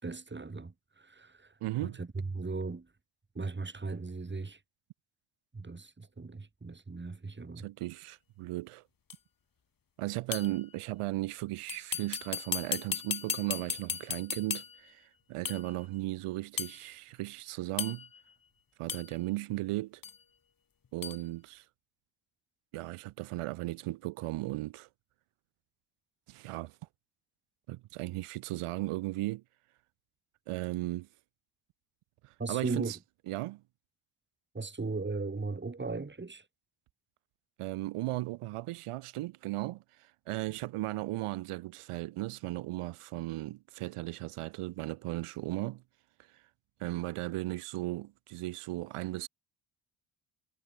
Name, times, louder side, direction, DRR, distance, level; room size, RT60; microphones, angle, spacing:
voice 1, 0.0-1.5 1.8-2.9 3.3-4.6 5.5-7.7 32.4-32.9 34.5-36.4, right 3 dB, 20° right, 6.4 m, -37 dB
voice 2, 1.6-2.0 7.6-8.8 10.0-18.1 18.8-20.0 20.9-21.6 22.7-24.9 26.3-26.8 27.7-29.4 30.5-31.1 32.2-33.0 33.3-33.6 37.6-45.8 46.3-46.4 46.8-49.3, right 17 dB, 85° right, 4.2 m, -36 dB
sound 1, 9.1-9.2 10.3-10.6 11.7-14.9 15.4-15.7 16.6-16.8 17.8-18.2 18.9-19.1 20.0-20.2 21.0-21.2, left 7 dB, 40° left, 5.5 m, -36 dB
cardioid pair, 90°, 50 cm